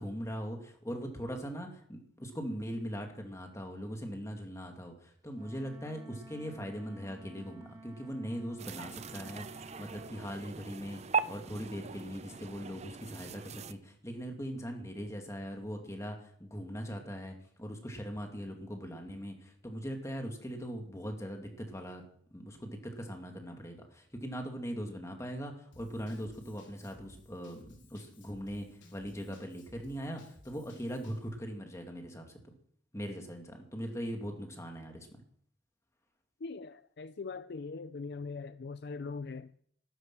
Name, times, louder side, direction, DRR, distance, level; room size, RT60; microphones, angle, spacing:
voice 1, 0.0-11.0 11.3-22.0 22.3-27.6 27.9-28.7 28.9-32.4 32.9-35.1, equal, 15° left, 2.2 m, -40 dB
Wind instrument woodwind instrument, 5.3-10.2, right 2 dB, 20° right, 2.6 m, -53 dB
sound 1, 8.6-13.7, right 5 dB, 35° right, 0.5 m, -39 dB
Drum kit / Drum, 25.7-31.3, left 2 dB, 75° left, 3.8 m, -59 dB
voice 2, 36.4-39.5, left 4 dB, 55° left, 0.5 m, -41 dB
13.0 x 13.0 x 6.1 m
head